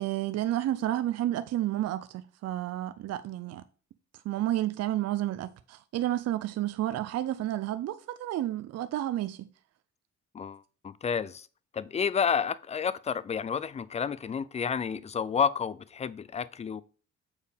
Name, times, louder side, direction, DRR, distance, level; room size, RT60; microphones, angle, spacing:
voice 1, 0.0-3.6 4.2-9.5, right 13 dB, 55° right, 0.5 m, -31 dB
voice 2, 10.3-11.5 11.7-16.8, left 6 dB, 25° left, 0.3 m, -30 dB
7.1 x 4.4 x 3.3 m
cardioid pair, 90°, 30 cm